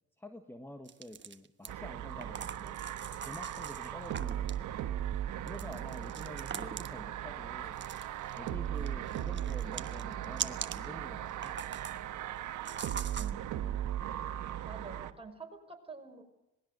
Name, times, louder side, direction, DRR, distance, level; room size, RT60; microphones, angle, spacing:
voice 1, 0.2-2.8 3.2-4.6 5.4-7.8 8.4-11.6, left 1 dB, 10° left, 6 dB, 1.6 m, -48 dB
sound 1, 0.8-1.7 2.2-4.6 5.5-7.0 7.8-8.5 8.8-10.9 11.3-12.0 12.6-13.3, right 7 dB, 40° right, 1.3 m, -42 dB
sound 2, 1.7-15.1, right 11 dB, 80° right, 1.3 m, -38 dB
voice 2, 13.2-13.8 14.6-16.2, right 4 dB, 20° right, 3 dB, 5.1 m, -48 dB
26.5 x 19.5 x 6.7 m, 0.95 s
cardioid pair, 90°, 30 cm